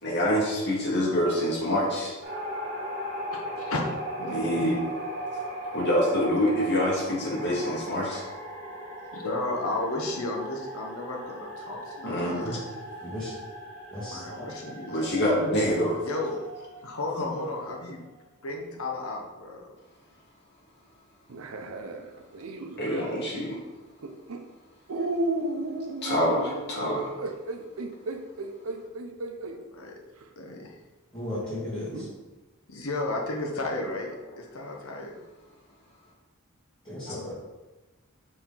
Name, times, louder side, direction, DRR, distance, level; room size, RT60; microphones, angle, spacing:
voice 1, 0.0-2.1 4.3-4.8 5.7-8.2 12.0-12.6 14.9-16.0 22.8-23.6 26.0-27.1 37.1-37.2, equal, 55° left, -4 dB, 1.8 m, -26 dB
sound 1, 2.2-18.2, right 1 dB, 40° right, 2.2 m, -38 dB
voice 2, 3.3-3.8 4.2-4.7 9.1-12.6 14.0-15.0 16.0-16.5 16.8-18.0 18.4-19.7 29.7-29.9 30.4-30.7 32.7-35.2, left 2 dB, 75° left, 0 dB, 1.0 m, -33 dB
voice 3, 13.0-13.3 13.9-14.2 31.1-32.1 36.8-37.3, left 1 dB, 20° left, -11 dB, 2.1 m, -35 dB
sound 2, 21.3-23.2 24.0-24.4 24.9-29.6 30.2-30.3 31.9-32.1, right 2 dB, 75° right, 0.7 m, -33 dB
6.2 x 4.8 x 3.8 m, 1.2 s
head